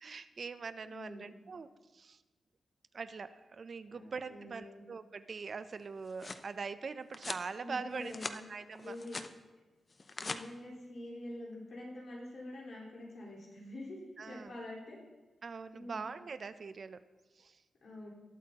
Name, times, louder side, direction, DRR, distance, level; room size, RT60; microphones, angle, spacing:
voice 1, 0.0-1.7 1.9-2.2 2.9-9.0 14.2-14.5 15.4-17.0 17.4-17.6, right 5 dB, 50° right, 12 dB, 0.5 m, -43 dB
voice 2, 0.9-1.3 3.9-4.8 7.6-8.4 8.8-9.2 10.2-15.0 15.7-16.0 17.8-18.1, left 1 dB, 65° left, -5 dB, 4.2 m, -46 dB
sound 1, 5.8-6.5 7.1-7.5 7.9-8.4 8.8-9.3 9.9-10.4, left 3 dB, 35° left, 0.6 m, -42 dB
20.0 x 8.3 x 2.9 m, 1.2 s
wide cardioid pair, 120°, 0 cm